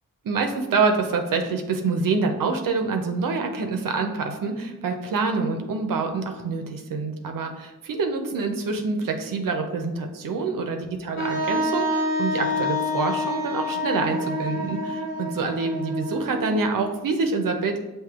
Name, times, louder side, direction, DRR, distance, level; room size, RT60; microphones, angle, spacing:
voice 1, 0.2-17.8, right 4 dB, 65° right, 4 dB, 0.6 m, -26 dB
Wind instrument woodwind instrument, 11.2-16.9, left 1 dB, 70° left, 1.0 m, -27 dB
6.0 x 2.7 x 2.4 m, 1.1 s
cardioid pair, 50°, 36 cm